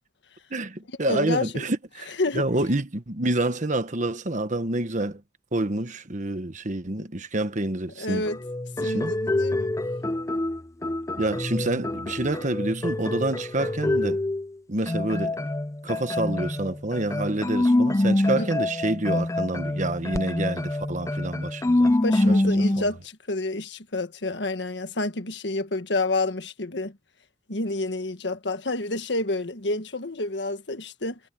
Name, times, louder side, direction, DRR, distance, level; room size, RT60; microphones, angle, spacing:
voice 1, 0.5-5.2 5.5-8.3 8.8-9.1 11.2-14.2 14.7-15.3 15.8-21.9 22.3-22.4, right 2 dB, 45° right, 1.3 m, -28 dB
voice 2, 1.0-1.6 2.2-2.5 8.0-8.4 8.8-9.7 17.3-17.4 18.3-18.5 22.0-27.0 27.5-31.2, left 2 dB, 90° left, 1.6 m, -29 dB
sound 1, 8.2-14.5 14.9-22.9, left 1 dB, 20° left, 0.5 m, -26 dB
head